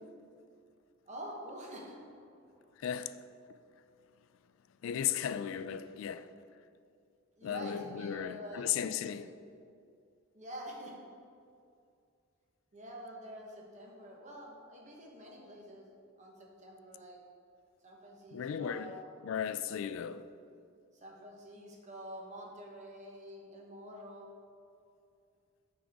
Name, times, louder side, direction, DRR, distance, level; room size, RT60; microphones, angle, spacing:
voice 1, 1.1-2.7 7.4-9.4 10.3-11.0 12.7-15.9 16.2-17.2 17.8-19.1 20.9-24.3, equal, 35° right, 1.0 m, -47 dB
voice 2, 2.8-3.2 4.8-6.3 7.4-9.3 18.3-19.0 19.2-20.2, left 9 dB, 70° left, 0.3 m, -35 dB
8.5 x 5.2 x 3.5 m
head